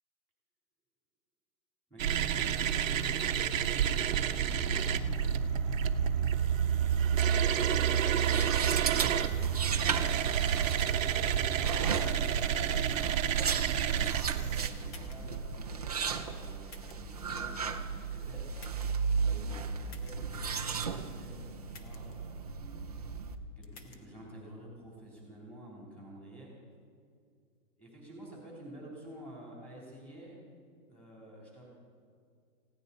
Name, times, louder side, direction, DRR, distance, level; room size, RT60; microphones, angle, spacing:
voice 1, 1.9-5.7 6.7-10.8 11.4-13.4 13.8-18.4 19.1-22.4 23.5-26.5 27.8-30.4 30.9-31.7, right 1 dB, 5° left, -4 dB, 3.5 m, -51 dB
sound 1, 2.0-14.7, right 8 dB, 55° right, 0.9 m, -29 dB
sound 2, 7.9-23.3, right 5 dB, 30° right, 0.4 m, -36 dB
sound 3, 14.9-15.4 16.7-17.1 18.6-19.0 19.9-20.2 21.7-22.2 23.6-24.0, left 4 dB, 25° left, 1.0 m, -53 dB
19.5 x 16.0 x 4.2 m, 2.2 s
hypercardioid pair, 165°, 45 cm